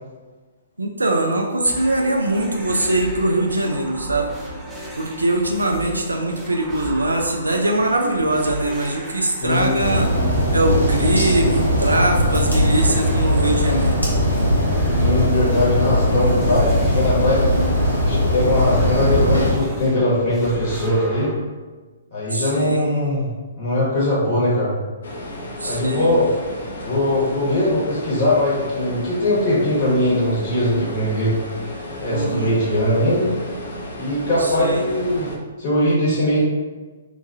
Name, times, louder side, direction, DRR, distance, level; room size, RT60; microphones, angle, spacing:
voice 1, 0.8-4.3 4.9-10.1 10.5-14.0 17.6-17.7 22.3-22.8 25.6-26.1 32.1-32.5 34.4-34.8, right 2 dB, 85° right, 2 dB, 0.4 m, -22 dB
sound 1, 1.6-21.4, right 1 dB, 5° right, 0.5 m, -35 dB
voice 2, 9.4-9.7 14.9-17.4 18.0-21.3 22.1-23.3 23.6-24.7 25.7-26.3 26.8-31.4 32.0-33.3 34.0-35.3 35.6-36.4, left 1 dB, 40° left, -8 dB, 1.4 m, -20 dB
sound 2, 9.8-19.5, equal, 85° left, 1.1 m, -19 dB
sound 3, 25.0-35.4, left 1 dB, 65° left, 0.5 m, -33 dB
2.9 x 2.3 x 2.6 m, 1.3 s
figure-of-eight pair, 125°, 0 cm